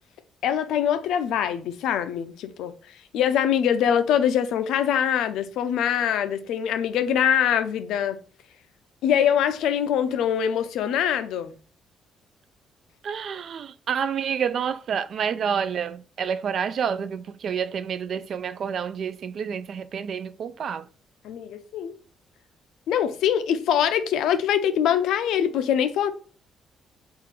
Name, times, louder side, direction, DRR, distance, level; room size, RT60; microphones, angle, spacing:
voice 1, 0.4-2.7 3.1-8.2 9.0-11.5 21.2-22.0 22.9-26.1, left 9 dB, 85° left, 0.5 m, -23 dB
voice 2, 13.0-20.9, right 7 dB, 45° right, 0.3 m, -29 dB
3.8 x 2.4 x 4.2 m
cardioid pair, 165°, 0 cm